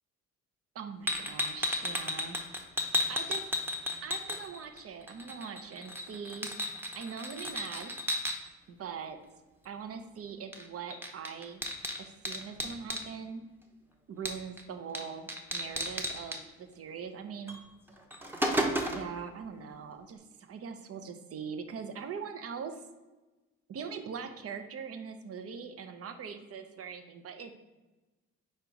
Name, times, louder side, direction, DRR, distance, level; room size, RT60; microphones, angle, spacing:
voice 1, 0.7-2.4 3.1-3.5 4.0-6.5 6.9-7.9 8.7-9.2 9.6-11.6 12.0-13.4 14.1-17.6 18.9-22.8 23.7-27.6, right 6 dB, 50° right, 8 dB, 0.7 m, -42 dB
sound 1, 1.1-4.8 5.1-8.4 10.5-10.6 10.9-13.1 14.3-14.6 14.9-15.0 15.3-16.4 17.5-17.6 18.0-19.1, left 1 dB, 5° right, 0.8 m, -33 dB
4.6 x 4.4 x 5.1 m, 1.1 s
cardioid pair, 90°, 30 cm